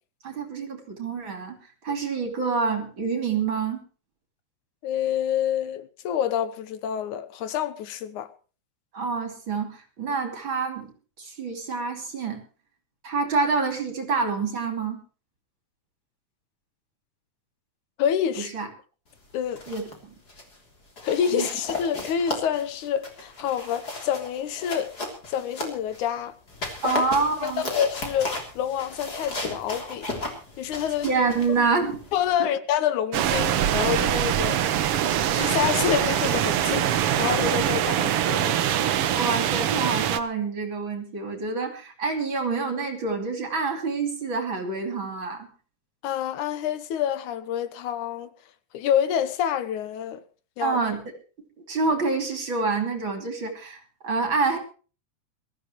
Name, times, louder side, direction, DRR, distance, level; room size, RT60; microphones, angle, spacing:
voice 1, 0.2-1.6 1.8-3.8 8.9-12.4 13.0-15.0 18.4-18.7 19.7-20.1 21.3-21.5 26.8-27.6 31.0-32.0 32.4-32.5 39.1-45.5 50.6-51.0 51.6-54.6, right 4 dB, 40° right, 3.4 m, -27 dB
voice 2, 4.8-8.3 18.0-18.5 19.3-19.7 21.0-24.9 25.3-26.3 26.8-27.0 27.4-30.1 30.6-31.1 32.1-34.9 35.3-38.6 46.0-48.3 48.7-50.2 50.6-50.8, left 9 dB, 85° left, 2.5 m, -27 dB
sound 1, 19.3-20.0 20.3-20.6 21.0-26.1 26.5-32.4, left 2 dB, 30° left, 3.8 m, -35 dB
sound 2, 33.1-40.2, right 10 dB, 65° right, 1.6 m, -23 dB
22.0 x 14.0 x 3.1 m
omnidirectional pair, 3.4 m